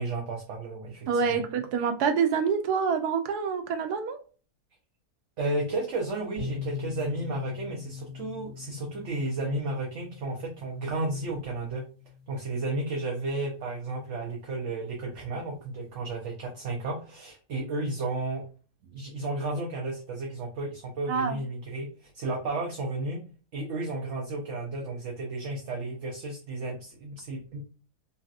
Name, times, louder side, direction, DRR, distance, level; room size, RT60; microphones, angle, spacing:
voice 1, 0.0-1.4 5.4-11.8 12.3-18.4 18.8-23.2 23.5-27.6, right 2 dB, 60° right, 0.9 m, -33 dB
voice 2, 1.1-4.2 21.1-21.4, right 6 dB, 85° right, 1.1 m, -26 dB
sound 1, 6.4-14.1, left 6 dB, 45° right, 1.5 m, -42 dB
3.2 x 2.7 x 2.4 m
omnidirectional pair, 1.6 m